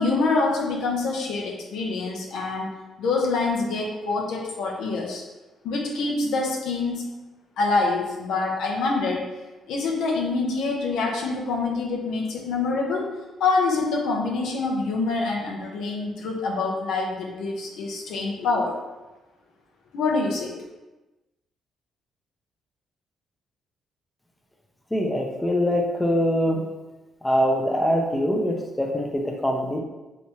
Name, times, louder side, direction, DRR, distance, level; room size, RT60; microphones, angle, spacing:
voice 1, 0.0-2.7 3.0-5.2 5.6-7.1 7.6-9.3 9.7-13.1 13.4-18.8 19.9-20.5, left 3 dB, 80° left, -1 dB, 0.7 m, -25 dB
voice 2, 24.9-26.7 27.2-29.8, equal, 15° left, 1 dB, 0.5 m, -23 dB
3.4 x 2.9 x 2.8 m, 1.1 s
cardioid pair, 90°, 0 cm